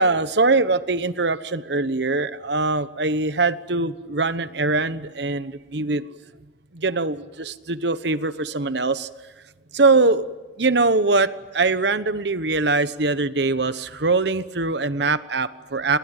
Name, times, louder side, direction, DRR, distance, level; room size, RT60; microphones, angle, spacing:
voice 1, 0.0-6.0 6.7-9.1 9.7-10.3 10.6-11.3 11.5-16.0, right 3 dB, 65° right, 13 dB, 1.1 m, -22 dB
30.0 x 22.0 x 9.1 m, 1.2 s
head